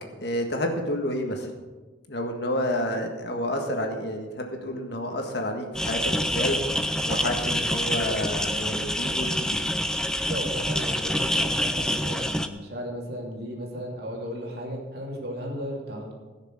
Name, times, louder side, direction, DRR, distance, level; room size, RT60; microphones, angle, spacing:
voice 1, 0.2-1.5 2.1-6.6 7.0-9.7, left 1 dB, 60° left, 3 dB, 1.7 m, -29 dB
sound 1, 5.7-12.5, equal, 5° left, 0.5 m, -27 dB
voice 2, 10.3-16.1, equal, 55° right, -1 dB, 2.9 m, -35 dB
16.0 x 6.6 x 6.3 m, 1.2 s
head